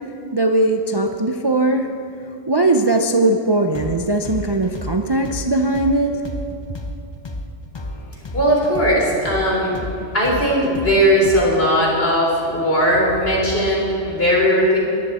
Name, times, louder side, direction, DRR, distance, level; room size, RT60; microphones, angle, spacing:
voice 1, 0.3-1.9 2.5-6.2, right 2 dB, 30° right, 4 dB, 0.6 m, -19 dB
sound 1, 3.7-11.7, left 1 dB, 25° left, 0.8 m, -31 dB
voice 2, 8.3-9.7 10.1-14.8, equal, 55° left, -3 dB, 4.2 m, -18 dB
21.5 x 14.0 x 4.3 m, 2.9 s
omnidirectional pair, 1.2 m